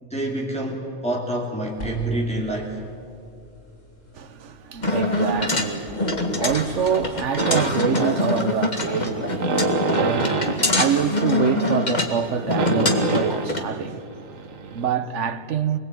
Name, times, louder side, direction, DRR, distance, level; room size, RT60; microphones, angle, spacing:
voice 1, 0.0-2.7, right 1 dB, 5° left, 3.0 m, -27 dB
sound 1, 1.7-7.2, left 1 dB, 85° left, 7.1 m, -43 dB
voice 2, 4.1-15.8, right 7 dB, 70° right, 1.3 m, -26 dB
sound 2, 4.8-13.6, left 2 dB, 35° left, 2.1 m, -24 dB
sound 3, 7.4-14.9, right 4 dB, 90° right, 1.6 m, -28 dB
26.0 x 20.5 x 9.2 m
omnidirectional pair, 1.3 m